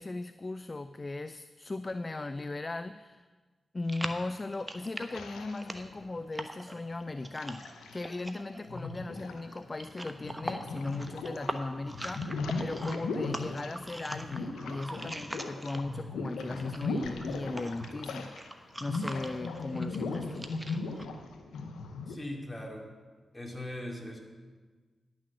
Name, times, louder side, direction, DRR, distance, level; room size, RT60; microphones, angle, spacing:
voice 1, 0.0-3.3 3.7-20.5, left 2 dB, 35° left, 12 dB, 0.4 m, -38 dB
sound 1, 3.9-16.1 16.4-21.1, right 1 dB, 15° right, 1.0 m, -42 dB
sound 2, 5.1-6.2 6.9-8.3 8.6-11.5 11.8-18.5 18.8-22.2, left 3 dB, 85° left, 0.8 m, -38 dB
voice 2, 22.1-22.9 23.3-24.2, left 1 dB, 20° left, 0 dB, 2.7 m, -39 dB
10.5 x 6.2 x 7.5 m, 1.4 s
supercardioid pair, 40°, 0 cm